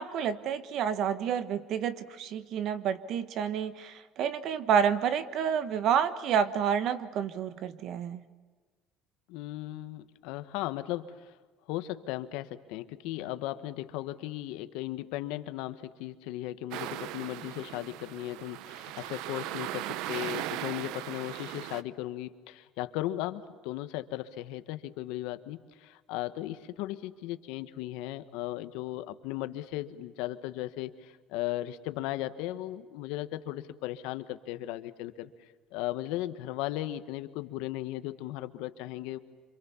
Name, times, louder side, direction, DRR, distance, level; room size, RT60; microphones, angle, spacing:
voice 1, 0.0-8.3, right 8 dB, 50° right, 13 dB, 1.3 m, -29 dB
voice 2, 9.3-11.2 11.7-35.3 35.7-39.2, left 15 dB, 85° left, 11 dB, 1.4 m, -36 dB
sound 1, 16.7-21.8, right 14 dB, 75° right, 0.8 m, -38 dB
27.5 x 26.0 x 7.2 m, 1.4 s
cardioid pair, 165°, 0 cm